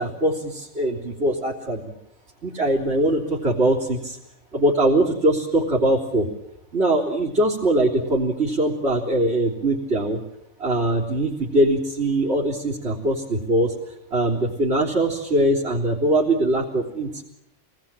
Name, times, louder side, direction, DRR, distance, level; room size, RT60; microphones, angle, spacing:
voice 1, 0.0-1.8 2.4-4.2 4.5-6.3 6.7-10.2 10.6-13.7 14.1-17.2, right 1 dB, 60° right, -3 dB, 3.8 m, -22 dB
27.5 x 19.5 x 9.0 m, 0.81 s
omnidirectional pair, 1.2 m